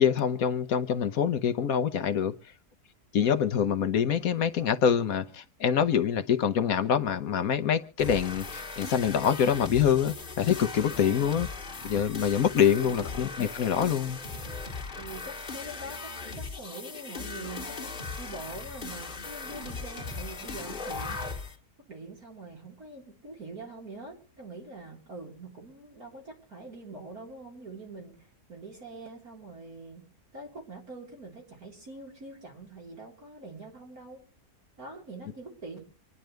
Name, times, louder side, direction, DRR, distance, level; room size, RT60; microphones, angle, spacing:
voice 1, 0.0-2.5 3.1-11.5 11.8-14.2, left 8 dB, 65° left, 1.2 m, -25 dB
sound 1, 8.0-21.5, left 4 dB, 35° left, 2.1 m, -38 dB
voice 2, 12.6-13.1 15.0-16.1 16.4-21.3 21.9-30.1 30.3-34.2 34.8-35.8, right 2 dB, 65° right, 4.4 m, -44 dB
26.5 x 10.5 x 3.2 m
omnidirectional pair, 1.7 m